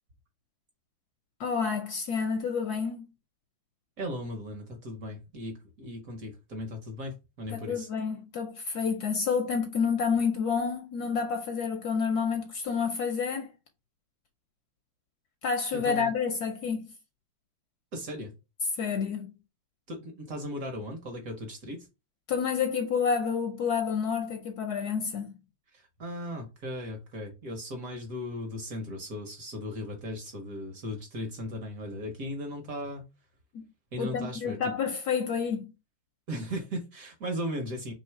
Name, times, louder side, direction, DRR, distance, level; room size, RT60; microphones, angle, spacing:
voice 1, 1.4-3.1 7.5-13.5 15.4-16.9 18.8-19.3 22.3-25.4 33.5-33.6 34.0-35.7, left 6 dB, 70° left, 0.9 m, -29 dB
voice 2, 4.0-7.9 15.7-16.1 17.9-18.3 19.9-21.9 25.7-33.0 33.9-34.6 36.3-37.9, equal, 55° right, 1.1 m, -37 dB
3.1 x 3.0 x 4.4 m
omnidirectional pair, 2.1 m